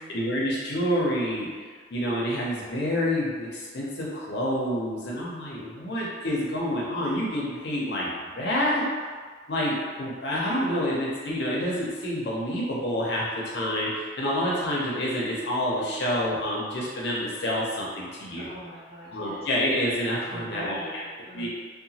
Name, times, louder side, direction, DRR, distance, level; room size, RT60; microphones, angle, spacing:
voice 1, 0.1-8.9 9.5-18.5 19.1-21.0 21.3-21.5, equal, 65° left, -5 dB, 0.6 m, -28 dB
voice 2, 18.4-19.4 20.2-21.5, right 1 dB, 30° right, -10 dB, 1.0 m, -41 dB
2.9 x 2.1 x 2.8 m, 1.6 s
head